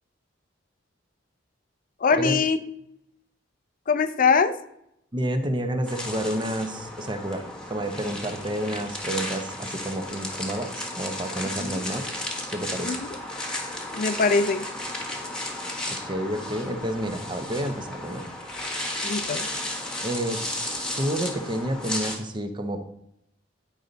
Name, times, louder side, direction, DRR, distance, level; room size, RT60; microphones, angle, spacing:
voice 1, 2.0-2.6 3.9-4.6 11.6-11.8 12.8-13.0 13.9-14.7 19.0-19.5, left 5 dB, 45° left, 12 dB, 0.5 m, -22 dB
voice 2, 5.1-12.1 12.5-13.0 16.0-18.2 20.0-20.4 20.9-22.8, right 1 dB, 25° right, 7 dB, 0.8 m, -29 dB
sound 1, 5.8-22.2, left 1 dB, 5° left, 1.3 m, -34 dB
9.6 x 5.3 x 4.0 m, 0.76 s
head